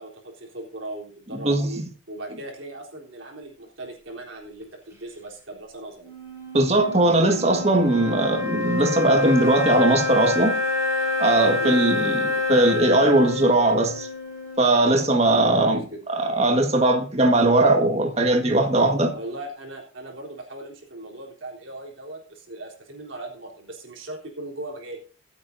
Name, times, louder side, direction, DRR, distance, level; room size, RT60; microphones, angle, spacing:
voice 1, 0.0-6.1 11.6-11.8 15.5-16.0 19.1-25.0, right 1 dB, 70° right, 3.7 m, -38 dB
voice 2, 1.4-1.8 6.5-10.6 11.2-14.1 14.6-15.8 16.1-19.1, right 2 dB, 30° right, 1.7 m, -19 dB
sound 1, 6.0-15.4, left 3 dB, 15° right, 5.0 m, -27 dB
25.5 x 8.7 x 2.7 m
head